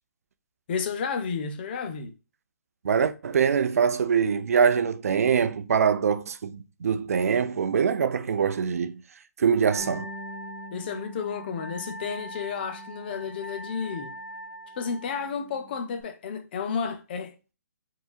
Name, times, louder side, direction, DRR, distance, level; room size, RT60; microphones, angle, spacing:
voice 1, 0.7-2.1 10.7-14.1 14.8-17.3, left 6 dB, 35° left, 0.7 m, -32 dB
voice 2, 2.8-9.0 9.4-10.1, right 6 dB, 55° right, 0.5 m, -23 dB
Wind instrument woodwind instrument, 9.7-15.3, right 1 dB, 70° left, 1.0 m, -42 dB
Bass guitar, 9.8-14.5 14.8-16.0, left 1 dB, 5° left, 1.7 m, -46 dB
4.6 x 4.0 x 2.3 m
hypercardioid pair, 155°, 9 cm